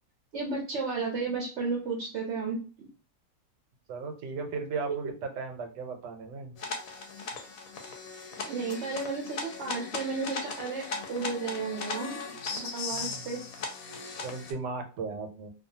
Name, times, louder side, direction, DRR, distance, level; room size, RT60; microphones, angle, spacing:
voice 1, 0.3-2.9 8.4-12.2 12.6-13.4, right 4 dB, 60° right, -1 dB, 0.7 m, -33 dB
voice 2, 3.9-6.5 13.0-13.2 14.2-15.5, right 4 dB, 80° right, 5 dB, 1.2 m, -36 dB
sound 1, 6.6-14.5, left 4 dB, 65° left, 0.9 m, -38 dB
2.7 x 2.3 x 2.7 m, 0.36 s
omnidirectional pair, 1.8 m